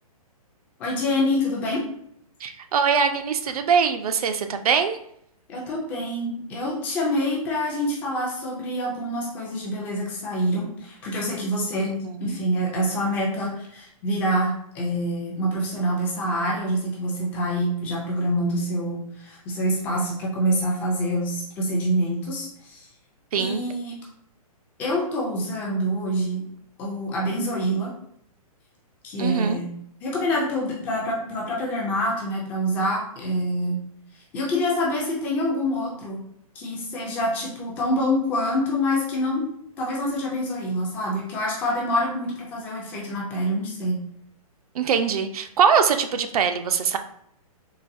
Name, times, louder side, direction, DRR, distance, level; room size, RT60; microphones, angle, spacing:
voice 1, 0.8-1.8 5.5-11.9 12.2-22.9 23.4-24.0 24.8-26.4 26.8-27.9 29.0-29.7 30.0-33.8 34.3-36.2 36.6-39.5 39.8-44.0, equal, 10° left, -3 dB, 0.3 m, -26 dB
voice 2, 2.4-5.0 11.8-12.4 23.3-23.6 29.2-29.6 44.7-47.0, right 6 dB, 75° right, 8 dB, 0.4 m, -22 dB
3.9 x 2.2 x 2.5 m, 0.70 s
hypercardioid pair, 165°, 19 cm